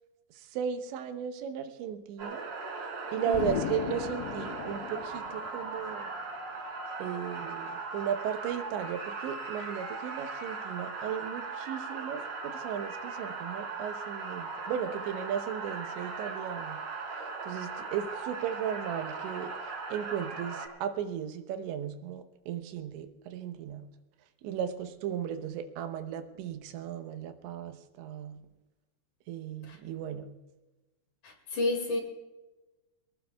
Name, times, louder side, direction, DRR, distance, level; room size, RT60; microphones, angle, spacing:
voice 1, 0.4-2.5 3.1-6.1 7.0-16.8 17.4-23.9 24.4-28.4 29.3-30.3, right 9 dB, 85° right, 8 dB, 3.3 m, -36 dB
sound 1, 2.2-20.7, right 4 dB, 40° right, 3.7 m, -39 dB
Explosion, 3.3-6.0, left 13 dB, 80° left, 2.6 m, -37 dB
voice 2, 3.3-3.6 29.7-29.8 31.2-32.0, left 2 dB, 50° left, 3 dB, 3.1 m, -31 dB
23.0 x 19.0 x 2.3 m, 1.1 s
omnidirectional pair, 5.1 m